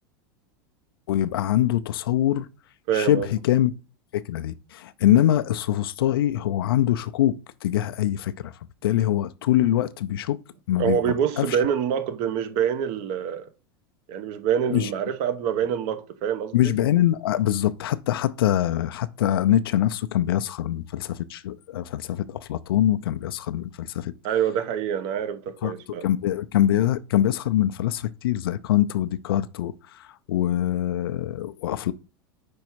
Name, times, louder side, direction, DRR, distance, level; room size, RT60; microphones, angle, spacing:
voice 1, 1.1-2.5 2.9-3.7 4.1-8.5 8.8-10.4 10.7-11.6 14.7-14.9 16.5-24.1 25.6-25.7 26.0-31.9, left 12 dB, 80° left, 0.5 m, -24 dB
voice 2, 2.9-3.3 10.8-13.5 14.1-16.7 24.2-26.1, right 8 dB, 55° right, 1.0 m, -26 dB
5.3 x 4.7 x 4.5 m
hypercardioid pair, 110°, 12 cm